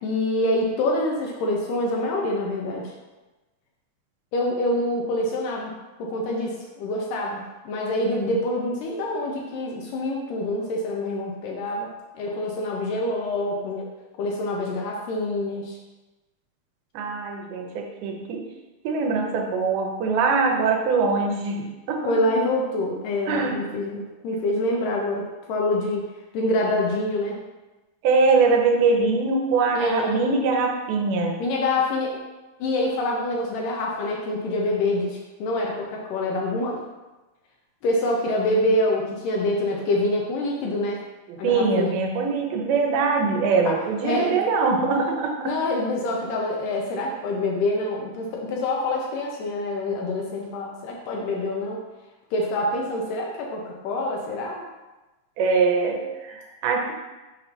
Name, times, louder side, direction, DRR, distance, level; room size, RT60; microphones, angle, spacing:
voice 1, 0.0-2.9 4.3-5.7 6.0-11.9 12.2-13.9 14.2-15.8 22.1-26.0 26.3-27.4 29.7-30.2 31.4-32.2 32.6-36.8 37.8-41.0 41.4-42.0 43.7-43.8 44.0-44.4 45.4-51.8 52.3-54.6, left 1 dB, 75° left, -1 dB, 2.1 m, -26 dB
voice 2, 16.9-18.4 18.8-22.1 23.3-23.6 28.0-31.4 41.3-45.5 55.4-56.9, right 4 dB, 90° right, 1 dB, 2.7 m, -22 dB
6.7 x 2.7 x 5.6 m, 1.1 s
omnidirectional pair, 4.3 m